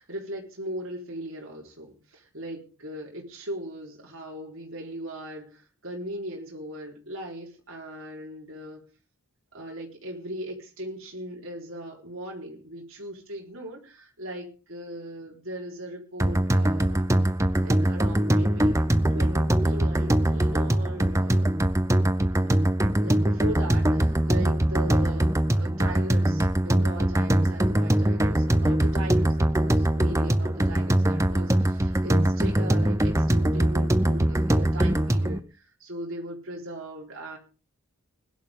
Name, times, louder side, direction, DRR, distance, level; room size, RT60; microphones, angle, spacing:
voice 1, 0.0-8.8 9.5-17.1 17.6-21.5 22.5-22.6 23.0-37.4, right 1 dB, 65° right, -2 dB, 4.3 m, -38 dB
sound 1, 16.2-35.4, right 1 dB, 15° right, 0.8 m, -22 dB
21.0 x 11.5 x 3.8 m, 0.34 s
head